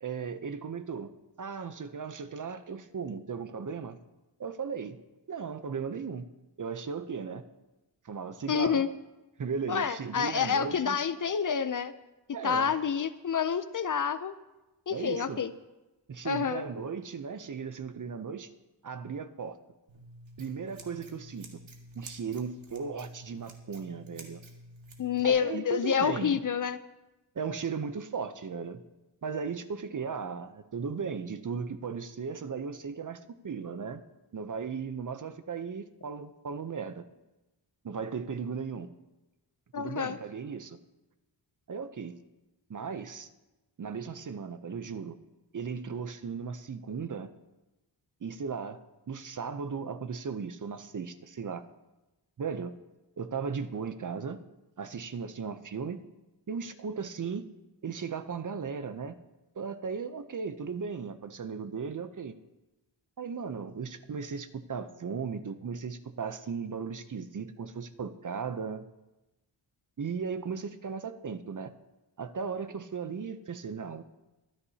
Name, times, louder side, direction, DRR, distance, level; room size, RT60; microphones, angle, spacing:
voice 1, 0.0-1.1 1.4-4.0 4.4-5.0 5.3-6.3 6.6-7.4 8.0-8.8 9.4-11.0 12.3-12.7 14.9-15.4 16.1-18.5 18.8-19.6 20.4-21.6 21.9-24.4 25.2-26.4 27.3-28.8 29.2-34.0 34.3-37.0 37.8-38.9 39.8-40.8 41.7-42.2 42.7-43.3 43.8-45.2 45.5-47.3 48.2-48.8 49.1-51.6 52.4-52.7 53.2-54.4 54.8-56.0 56.5-57.4 57.8-59.2 59.6-62.4 63.2-68.9 70.0-71.7 72.2-74.0, right 5 dB, 45° right, 11 dB, 0.7 m, -36 dB
voice 2, 8.5-8.9 9.7-11.9 12.4-14.3 14.9-15.5 16.2-16.6 25.0-26.8 39.7-40.2, left 7 dB, 45° left, 13 dB, 0.5 m, -28 dB
Scissors, 19.9-25.3, right 1 dB, 85° right, 1.8 m, -50 dB
23.0 x 9.9 x 2.8 m, 1.0 s
wide cardioid pair, 105°, 45 cm